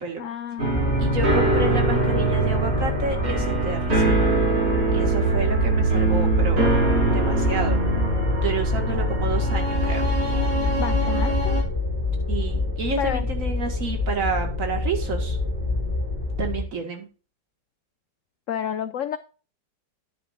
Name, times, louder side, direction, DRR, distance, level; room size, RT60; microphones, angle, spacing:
voice 1, 0.2-0.8 10.8-11.6 13.0-13.3 18.5-19.2, left 9 dB, 80° left, 12 dB, 0.7 m, -30 dB
sound 1, 0.6-11.6, right 3 dB, 75° right, 3.4 m, -23 dB
sound 2, 0.7-16.6, left 3 dB, 35° left, 5.6 m, -27 dB
voice 2, 1.0-4.3 4.9-6.8 7.1-7.8 8.4-10.1 12.3-15.4 16.4-17.1, right 4 dB, 50° right, 4 dB, 2.2 m, -30 dB
10.5 x 10.0 x 2.6 m, 0.36 s
omnidirectional pair, 1.9 m